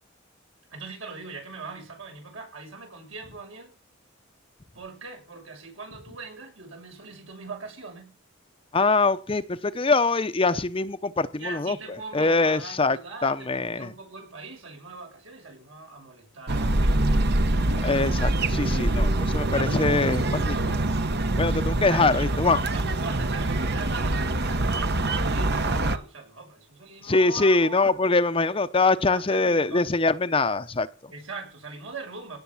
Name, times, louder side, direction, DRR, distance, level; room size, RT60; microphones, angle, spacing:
voice 1, 0.7-3.7 4.7-8.1 11.4-17.3 21.9-25.0 25.3-27.8 29.1-29.8 31.1-32.4, right 3 dB, 75° right, 2 dB, 7.0 m, -41 dB
voice 2, 8.7-11.8 12.1-13.9 17.8-20.6 21.4-22.6 27.0-31.1, left 3 dB, 25° left, 11 dB, 0.7 m, -23 dB
sound 1, 16.5-26.0, right 2 dB, 55° right, 1.0 m, -24 dB
17.5 x 7.2 x 7.2 m, 0.38 s
head